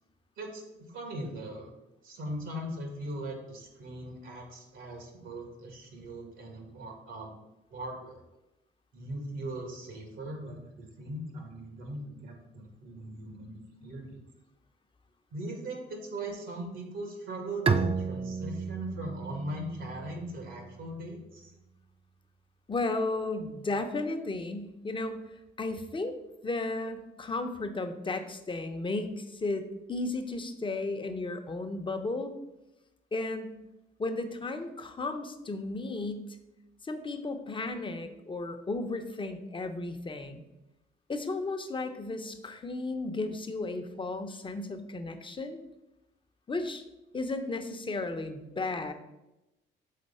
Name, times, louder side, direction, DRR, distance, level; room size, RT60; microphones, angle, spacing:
voice 1, 0.4-1.7 2.0-7.3 7.7-8.2 8.9-14.2 15.3-21.5, right 1 dB, 75° right, 2 dB, 1.9 m, -40 dB
Bowed string instrument, 17.7-21.2, right 5 dB, 30° right, 0.4 m, -32 dB
voice 2, 22.7-25.2 25.6-26.2 26.4-32.3 33.1-33.5 34.0-36.3 36.8-40.4 41.1-45.6 46.5-46.8 47.1-48.9, left 2 dB, 25° left, 6 dB, 0.8 m, -34 dB
6.6 x 4.0 x 5.4 m, 0.95 s
cardioid pair, 90°, 20 cm